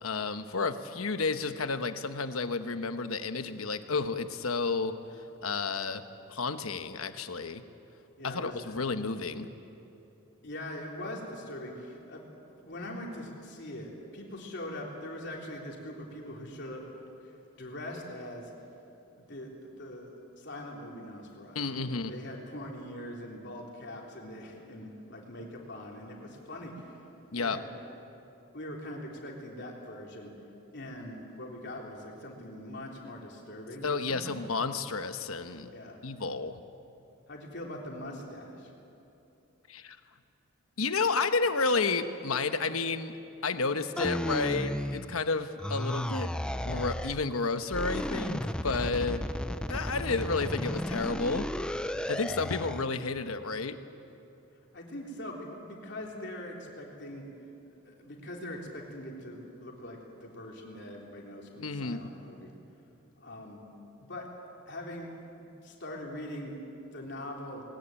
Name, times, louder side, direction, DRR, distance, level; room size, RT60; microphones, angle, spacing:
voice 1, 0.0-4.9 5.4-6.0 6.3-7.6 8.2-9.5 21.5-22.1 27.3-27.6 33.8-35.7 36.0-36.6 39.7-40.0 40.8-43.1 43.4-46.3 46.6-49.2 49.7-51.5 52.1-53.8 61.6-62.1, left 4 dB, 90° left, 9 dB, 1.1 m, -31 dB
voice 2, 8.2-8.8 10.4-16.8 17.2-18.5 19.1-27.0 27.4-27.7 28.5-30.3 30.7-34.3 35.7-36.0 37.3-38.7 52.0-52.3 54.7-57.3 57.7-62.5 63.2-63.6 64.0-64.3 64.7-65.1 65.4-66.6 66.9-67.6, left 1 dB, 55° left, -1 dB, 3.5 m, -42 dB
sound 1, 44.0-45.3 45.6-47.3 47.7-52.9, equal, 5° left, 0.4 m, -34 dB
20.0 x 18.5 x 8.9 m, 2.8 s
head